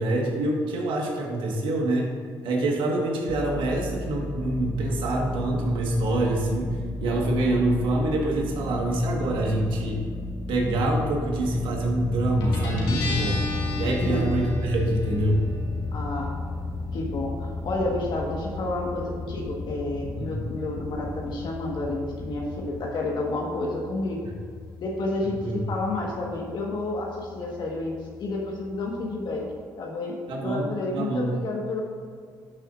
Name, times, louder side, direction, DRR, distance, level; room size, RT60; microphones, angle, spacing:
voice 1, 0.0-2.1 2.4-10.1 10.5-13.4 13.7-15.4 20.1-20.3 25.4-25.6 30.3-31.3, right 1 dB, 75° right, 0 dB, 1.5 m, -25 dB
sound 1, 3.3-22.9, left 1 dB, 5° right, 0.6 m, -36 dB
Guitar, 12.4-29.6, left 3 dB, 75° left, 2.0 m, -35 dB
voice 2, 14.0-14.3 15.9-16.3 16.9-24.3 24.8-25.4 25.7-29.5 29.8-31.8, left 2 dB, 60° left, -1 dB, 1.4 m, -30 dB
12.5 x 6.5 x 2.5 m, 2.1 s
supercardioid pair, 65°, 9 cm